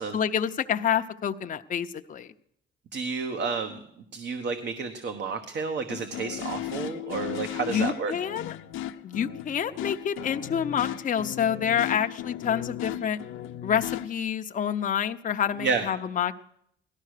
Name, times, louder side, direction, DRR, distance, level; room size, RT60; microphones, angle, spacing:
voice 1, 0.1-2.3 7.7-8.6 9.0-13.2 13.6-16.4, left 8 dB, 40° left, 6 dB, 0.7 m, -28 dB
voice 2, 2.9-3.8 4.1-8.1 15.6-15.9, right 5 dB, 60° right, 7 dB, 1.3 m, -30 dB
sound 1, 5.9-14.1, left 11 dB, 90° left, 0.7 m, -36 dB
17.0 x 12.5 x 6.6 m, 0.73 s
cardioid pair, 90°, 20 cm